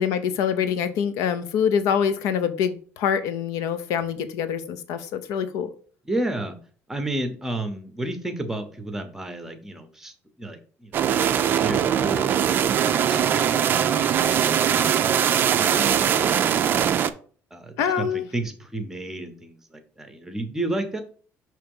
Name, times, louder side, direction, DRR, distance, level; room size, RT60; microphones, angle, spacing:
voice 1, 0.0-5.7 17.8-18.3, left 7 dB, 85° left, 0.7 m, -25 dB
voice 2, 6.0-6.6 6.9-10.1 10.4-11.0 15.4-16.7 17.5-21.0, right 1 dB, 5° right, 0.7 m, -32 dB
sound 1, 10.9-17.1, right 9 dB, 35° right, 0.4 m, -21 dB
5.7 x 3.1 x 5.3 m
cardioid pair, 165°, 6 cm